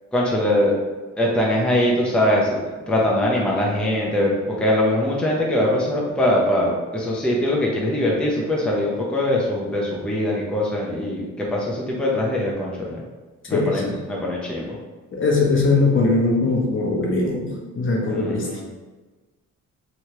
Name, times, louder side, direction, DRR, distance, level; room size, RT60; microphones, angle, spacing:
voice 1, 0.1-0.7 1.2-2.6 2.9-13.0 13.5-14.8 18.1-18.6, left 1 dB, 5° left, -4 dB, 0.5 m, -22 dB
voice 2, 13.5-13.9 15.1-17.5 17.8-18.6, left 3 dB, 40° left, -1 dB, 0.7 m, -20 dB
3.0 x 2.2 x 2.9 m, 1.3 s
cardioid pair, 90°, 30 cm